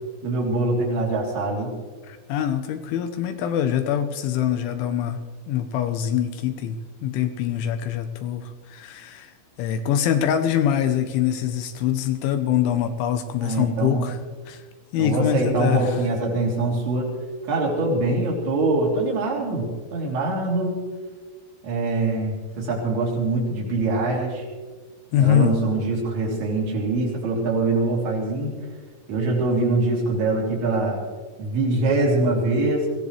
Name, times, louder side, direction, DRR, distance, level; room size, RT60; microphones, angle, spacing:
voice 1, 0.2-1.7 13.4-14.2 15.0-17.1 17.4-20.9 21.6-24.5 25.2-28.5 29.1-31.0 31.4-32.9, right 2 dB, 55° right, -2 dB, 5.0 m, -23 dB
voice 2, 2.1-5.2 5.5-14.2 14.5-14.6 14.9-16.0 25.1-25.5, left 9 dB, 80° left, 8 dB, 3.0 m, -24 dB
22.5 x 17.5 x 3.3 m, 1.4 s
omnidirectional pair, 5.9 m